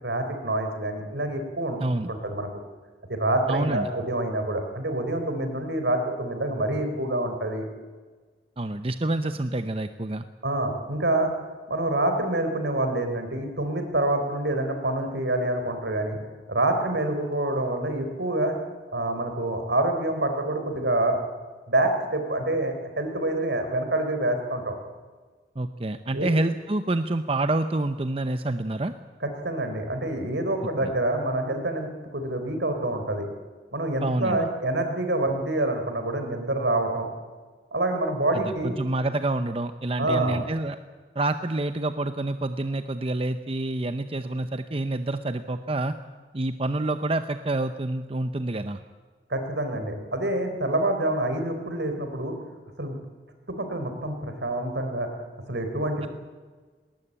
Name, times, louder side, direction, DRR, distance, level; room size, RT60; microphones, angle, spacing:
voice 1, 0.0-1.8 2.1-2.5 3.1-7.6 10.4-11.3 11.7-16.2 16.5-18.6 18.9-21.2 21.7-24.8 26.1-26.3 29.2-33.3 33.7-37.1 37.7-38.7 40.0-40.4 49.3-52.4 52.8-53.0 53.5-55.1 55.5-56.1, right 1 dB, 70° right, 6 dB, 4.0 m, -27 dB
voice 2, 1.8-2.1 3.5-3.9 8.6-10.2 25.6-28.9 30.8-30.9 34.0-34.5 38.3-40.8 41.1-46.0 46.3-48.8 56.0-56.1, right 2 dB, 30° right, 9 dB, 0.7 m, -27 dB
19.5 x 19.5 x 8.8 m, 1.4 s
head